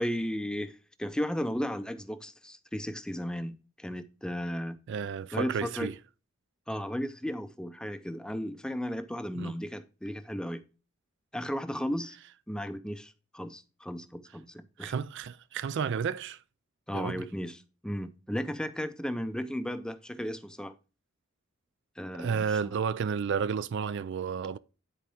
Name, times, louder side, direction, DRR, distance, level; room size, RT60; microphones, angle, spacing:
voice 1, 0.0-4.8 5.3-5.9 6.7-10.6 11.3-12.2 12.5-15.0 16.9-17.6 17.8-20.7 22.0-22.7, equal, 5° left, 0.5 m, -35 dB
voice 2, 4.9-5.9 9.4-9.5 14.8-16.4 16.9-17.2 22.2-24.6, right 6 dB, 60° right, 0.4 m, -31 dB
10.0 x 4.6 x 3.4 m
head